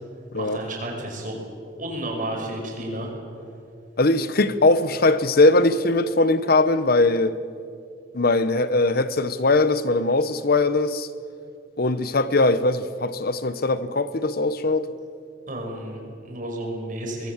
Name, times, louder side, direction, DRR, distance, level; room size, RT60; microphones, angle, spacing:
voice 1, 0.3-1.3 1.8-3.1 4.5-4.6 15.5-17.3, right 1 dB, 45° right, 5.8 m, -32 dB
voice 2, 4.0-7.4 8.1-11.1 11.8-14.9, left 2 dB, 55° left, 1.0 m, -20 dB
23.5 x 22.0 x 7.4 m
head